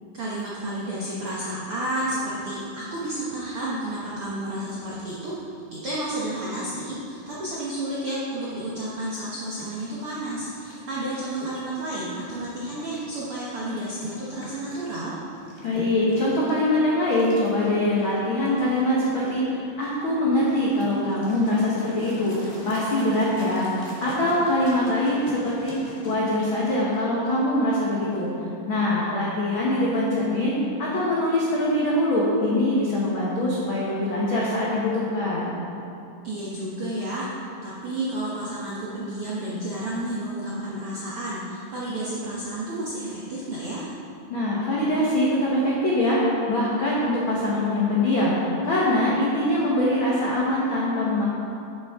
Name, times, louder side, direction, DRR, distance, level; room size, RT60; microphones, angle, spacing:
voice 1, 0.1-5.4 5.7-15.2 36.2-37.3 37.6-43.9, right 1 dB, 70° right, -7 dB, 1.3 m, -31 dB
sound 1, 9.4-26.1, right 1 dB, 20° left, 1.1 m, -44 dB
voice 2, 15.6-25.8 26.0-28.4 28.7-30.5 30.8-35.5 44.3-46.2 46.5-51.2, left 1 dB, 80° left, -6 dB, 1.1 m, -23 dB
10.0 x 8.5 x 3.6 m, 2.7 s
omnidirectional pair, 4.2 m